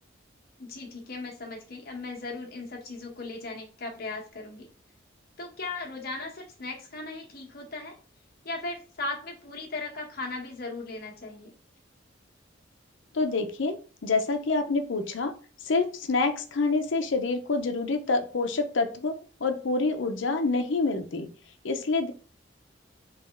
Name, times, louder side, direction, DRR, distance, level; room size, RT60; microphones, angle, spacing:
voice 1, 0.6-4.7 5.4-8.0 8.4-11.5, left 3 dB, 50° left, -1 dB, 1.1 m, -37 dB
voice 2, 13.1-13.7 14.0-15.3 15.6-19.1 19.4-21.3 21.6-22.1, left 3 dB, 80° left, 6 dB, 0.6 m, -27 dB
3.4 x 3.0 x 3.4 m, 0.39 s
head